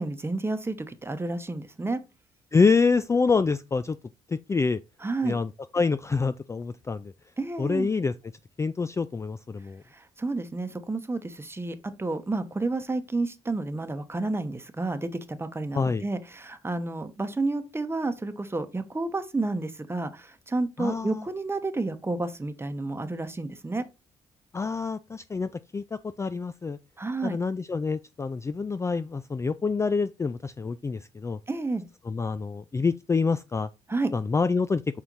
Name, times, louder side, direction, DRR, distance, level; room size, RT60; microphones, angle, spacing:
voice 1, 0.0-2.0 5.0-5.4 7.4-7.9 9.9-23.8 27.0-27.4 31.5-31.8 33.9-34.1, right 2 dB, 15° right, 1.0 m, -30 dB
voice 2, 2.5-4.0 4.3-4.8 5.2-5.5 5.7-7.1 7.6-8.1 8.6-9.8 15.7-16.0 20.8-21.2 24.5-26.8 27.2-31.4 32.1-33.7 34.1-34.8, left 4 dB, 20° left, 0.3 m, -26 dB
5.6 x 4.4 x 4.0 m
supercardioid pair, 65°, 14 cm